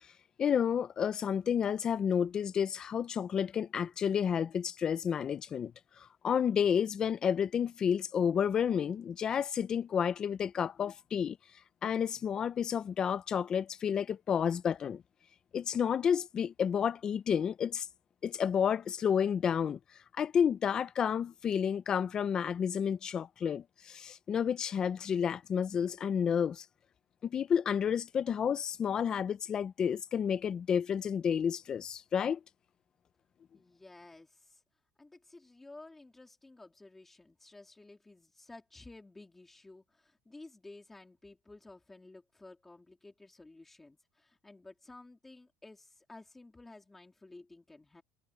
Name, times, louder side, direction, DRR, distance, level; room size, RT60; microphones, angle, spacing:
voice 1, 0.4-5.7 6.0-11.4 11.8-15.0 15.5-17.9 18.2-19.8 20.2-26.6 27.2-32.4, left 8 dB, 25° left, 0.6 m, -30 dB
voice 2, 33.5-34.6 35.0-48.0, left 2 dB, 10° left, 3.2 m, -54 dB
cardioid pair, 155°, 3 cm